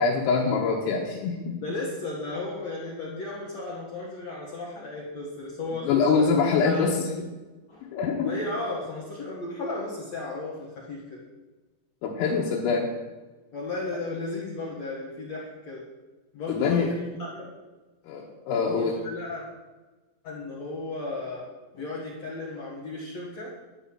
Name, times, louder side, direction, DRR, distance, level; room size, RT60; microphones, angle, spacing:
voice 1, 0.0-1.6 5.9-7.1 7.9-8.4 12.0-12.9 16.5-16.9 18.1-19.0, left 5 dB, 85° left, -2 dB, 3.8 m, -24 dB
voice 2, 1.6-6.3 6.6-6.9 7.7-11.2 13.5-15.8 16.3-17.5 18.8-19.4 20.2-21.5 21.7-23.5, left 2 dB, 65° left, -4 dB, 1.6 m, -35 dB
12.0 x 5.6 x 8.8 m, 1.2 s
omnidirectional pair, 5.9 m